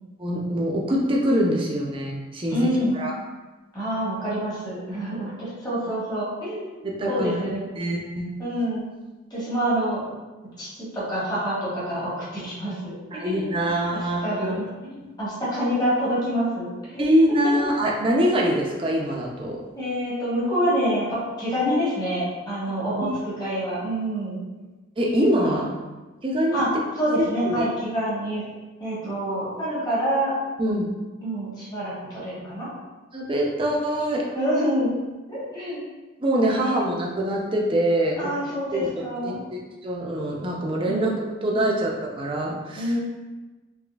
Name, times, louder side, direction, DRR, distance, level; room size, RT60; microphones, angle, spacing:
voice 1, 0.2-2.7 2.9-3.1 6.8-7.4 7.8-8.3 13.1-14.6 17.0-19.6 23.0-23.1 25.0-25.7 26.2-26.6 27.2-27.7 30.6-30.9 33.1-34.3 36.2-38.3 38.8-41.9 42.2-43.0, equal, 25° right, -1 dB, 0.5 m, -24 dB
voice 2, 2.5-3.0 3.7-7.6 8.4-8.8 9.3-10.0 10.6-13.5 13.9-16.7 16.9-17.6 19.7-24.4 25.4-25.6 26.5-26.7 27.0-28.4 28.8-30.3 31.2-32.7 34.3-34.9 35.3-35.8 36.5-36.8 38.2-39.4 40.8-41.1 41.5-41.6 42.8-43.0, equal, 20° left, -10 dB, 1.3 m, -27 dB
3.8 x 3.1 x 2.3 m, 1.2 s
head